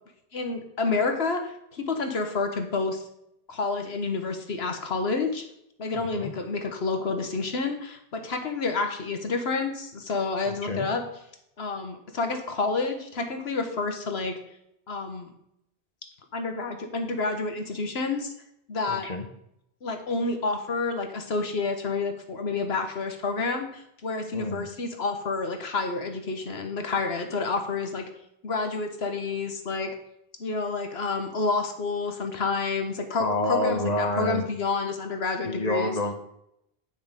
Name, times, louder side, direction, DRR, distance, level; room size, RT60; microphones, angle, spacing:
voice 1, 0.3-3.0 3.5-5.4 5.8-11.0 11.6-14.3 14.9-15.3 16.3-18.3 18.7-19.1 19.8-28.0 28.4-29.9 30.4-35.9, left 3 dB, 75° left, 5 dB, 1.4 m, -29 dB
voice 2, 6.0-6.3 10.5-10.9 18.9-19.2 24.3-24.7 33.2-34.5 35.5-36.1, left 1 dB, 45° left, 5 dB, 1.0 m, -28 dB
9.6 x 5.5 x 5.2 m, 0.76 s
omnidirectional pair, 1.1 m